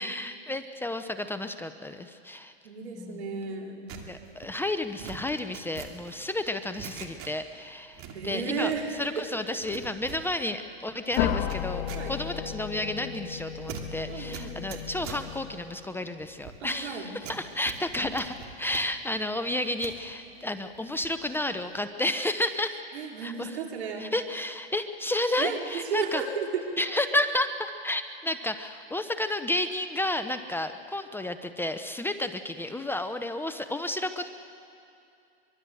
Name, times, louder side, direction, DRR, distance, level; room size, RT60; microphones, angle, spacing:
voice 1, 0.0-2.5 3.0-3.3 4.1-8.7 9.0-22.8 23.2-23.6 24.0-26.2 26.8-34.3, left 1 dB, 5° left, 9 dB, 0.6 m, -31 dB
voice 2, 2.6-3.9 8.1-9.3 11.9-12.1 14.1-14.6 16.6-17.1 22.9-24.1 25.4-26.6, right 5 dB, 80° right, 1 dB, 4.2 m, -33 dB
sound 1, 3.9-7.6 7.9-9.1 9.4-20.0 20.4-21.3 21.5-21.8, right 7 dB, 45° right, 2.8 m, -45 dB
sound 2, 11.2-15.9, left 10 dB, 55° left, 1.6 m, -33 dB
24.0 x 22.5 x 7.8 m, 2.5 s
hypercardioid pair, 130°, 32 cm